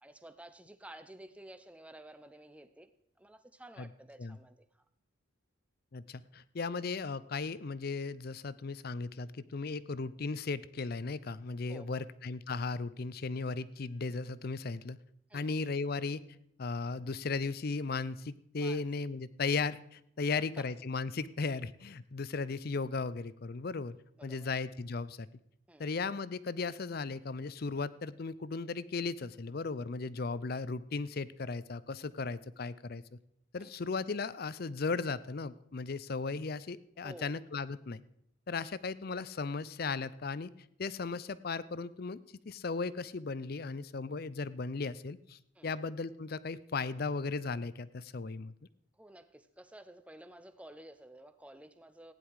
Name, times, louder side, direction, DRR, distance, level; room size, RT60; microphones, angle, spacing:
voice 1, 0.0-2.9 3.2-4.8 11.7-12.0 15.3-15.5 18.6-18.8 20.6-20.7 24.2-24.5 25.7-25.9 33.6-33.7 37.0-37.3 45.5-45.8 48.9-52.1, right 1 dB, 5° right, 10 dB, 0.7 m, -52 dB
voice 2, 5.9-15.0 15.3-16.2 16.6-24.0 24.2-25.3 25.8-33.2 33.5-38.0 38.5-40.5 40.8-42.2 42.5-48.5, left 4 dB, 50° left, 17 dB, 0.5 m, -36 dB
15.5 x 10.0 x 4.8 m, 0.72 s
head